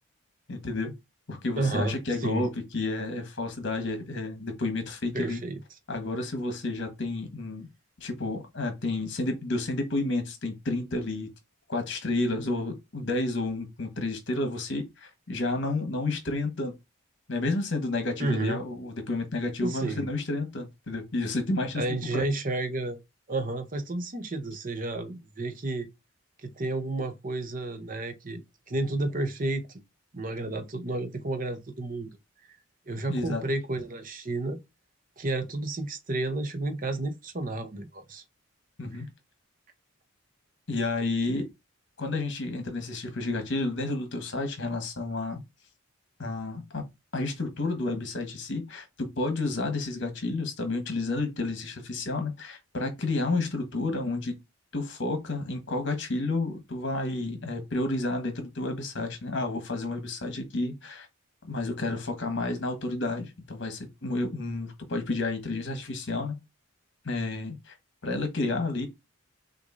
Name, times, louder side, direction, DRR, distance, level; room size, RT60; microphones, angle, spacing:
voice 1, 0.5-0.9 1.3-5.4 5.9-7.7 8.0-11.3 11.7-16.8 17.3-21.8 22.1-22.2 33.1-33.4 38.8-39.1 40.7-41.5 42.0-45.4 46.2-46.8 47.1-54.4 54.7-61.1 61.4-66.3 67.0-67.7 68.0-68.9, left 2 dB, 55° left, 1.2 m, -31 dB
voice 2, 1.6-2.4 5.1-5.6 18.2-18.6 19.6-20.1 21.8-23.0 23.3-25.9 26.4-28.4 28.7-29.7 30.1-32.1 32.9-34.6 35.2-38.2, right 2 dB, 40° right, 0.7 m, -31 dB
6.2 x 2.6 x 2.5 m
head